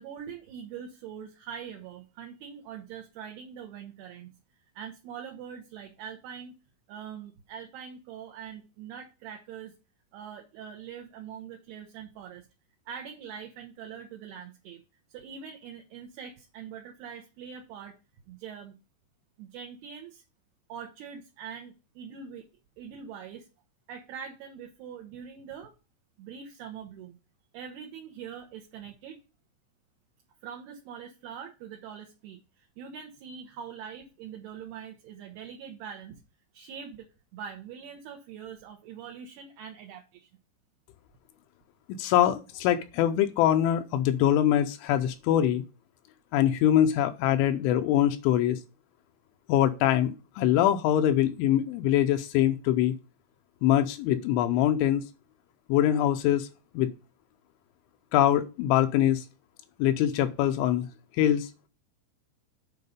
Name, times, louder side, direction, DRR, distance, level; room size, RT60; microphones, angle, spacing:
voice 1, 0.0-4.3 4.8-6.6 6.9-9.7 10.1-12.5 12.9-14.8 15.1-18.0 18.3-18.8 19.4-20.2 20.7-22.4 22.8-23.5 23.9-25.7 26.2-27.2 27.5-29.2 30.4-36.2 36.5-37.1 37.3-40.3, right 7 dB, 75° right, 2.5 m, -43 dB
voice 2, 41.9-45.6 46.3-48.6 49.5-52.9 53.6-55.0 55.7-56.5 56.7-56.9 58.1-59.2 59.8-60.9 61.1-61.5, left 11 dB, 85° left, 3.0 m, -23 dB
8.2 x 4.5 x 5.2 m
omnidirectional pair, 5.4 m